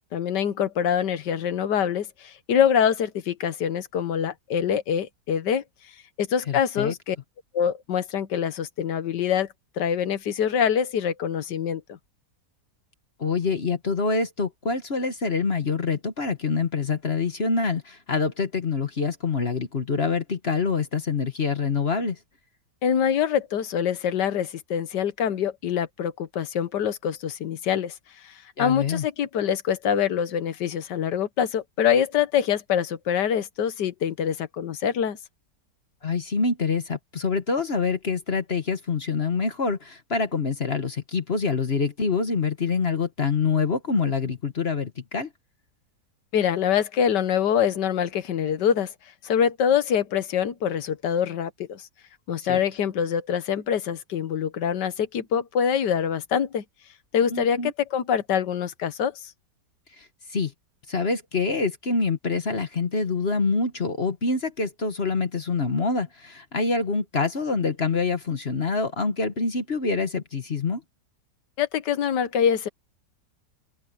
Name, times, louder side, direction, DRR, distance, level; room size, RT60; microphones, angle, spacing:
voice 1, 0.1-5.6 6.2-7.2 7.5-9.5 9.8-12.0 22.8-27.9 28.2-35.2 46.3-48.9 49.2-51.9 52.3-56.6 57.1-59.1 71.6-72.7, left 8 dB, 90° left, 1.7 m, -25 dB
voice 2, 6.5-6.9 13.2-22.2 28.6-29.0 36.0-45.3 52.4-52.6 57.3-57.7 60.0-60.1 60.3-60.5 60.9-70.8, left 4 dB, 40° left, 1.5 m, -26 dB
open air
omnidirectional pair, 1.8 m